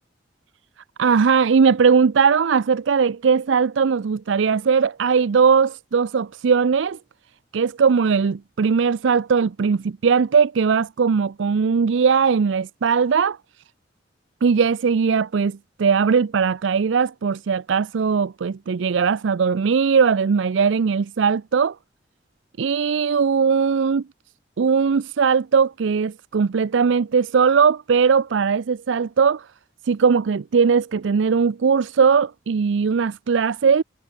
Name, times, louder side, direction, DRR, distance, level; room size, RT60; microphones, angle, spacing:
voice 1, 1.0-7.0 7.5-13.4 14.4-21.8 22.6-24.0 24.6-29.5 29.9-33.8, right 6 dB, 75° right, 0.5 m, -19 dB
head